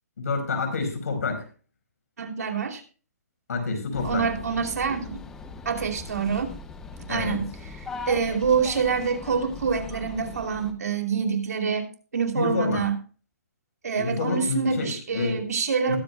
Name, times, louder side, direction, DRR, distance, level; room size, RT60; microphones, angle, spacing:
voice 1, 0.2-1.5 3.5-4.2 7.1-7.4 12.3-12.8 13.9-15.4 15.9-16.0, left 4 dB, 70° left, 5 dB, 4.7 m, -28 dB
voice 2, 2.2-2.8 4.0-5.2 5.6-6.5 7.1-7.8 8.1-11.9 12.1-12.9 13.8-16.0, right 6 dB, 75° right, 4 dB, 2.8 m, -26 dB
sound 1, 3.9-10.7, left 4 dB, 5° left, 0.5 m, -40 dB
20.5 x 8.5 x 2.2 m, 0.37 s
hypercardioid pair, 170°, 9 cm